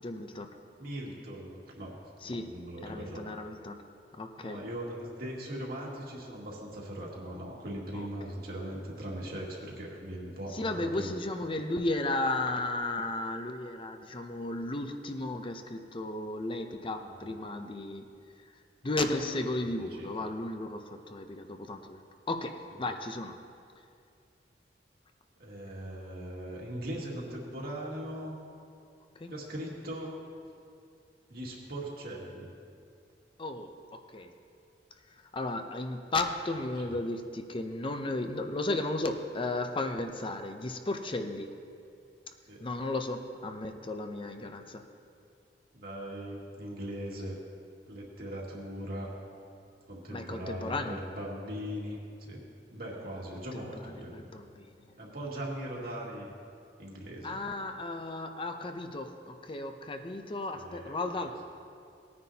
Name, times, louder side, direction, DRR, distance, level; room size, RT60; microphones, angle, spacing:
voice 1, 0.0-0.6 2.2-2.5 2.8-3.8 4.2-4.6 7.9-8.1 10.5-18.0 18.8-22.0 22.3-23.4 29.2-29.3 33.4-34.3 35.3-41.5 42.6-44.8 50.1-51.0 53.5-53.8 54.1-54.7 57.2-61.4, left 2 dB, 30° left, 6 dB, 0.6 m, -34 dB
voice 2, 0.8-1.9 2.2-3.2 4.4-11.2 17.0-17.4 19.8-20.1 25.4-28.4 29.3-30.2 31.3-32.5 36.5-37.0 42.5-42.6 45.7-47.4 47.9-49.1 49.9-52.4 52.7-54.1 55.0-56.3 56.8-57.4 60.5-61.3, right 1 dB, 60° right, -3 dB, 2.1 m, -40 dB
18.5 x 9.6 x 2.8 m, 2.4 s
head